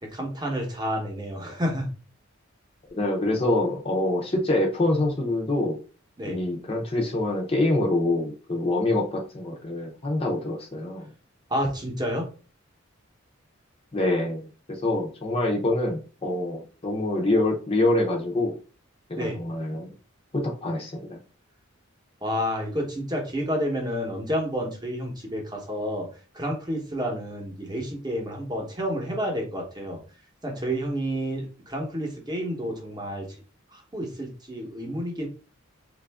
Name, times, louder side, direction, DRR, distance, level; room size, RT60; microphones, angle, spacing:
voice 1, 0.0-1.9 6.2-6.4 11.5-12.3 19.1-19.4 22.2-26.1 26.3-30.0 30.4-33.3 33.7-35.3, equal, 20° right, 1 dB, 0.9 m, -30 dB
voice 2, 3.0-5.8 6.2-11.1 13.9-18.6 19.1-19.9 20.3-21.2, left 2 dB, 30° left, 0 dB, 0.6 m, -25 dB
3.2 x 2.5 x 3.4 m, 0.36 s
head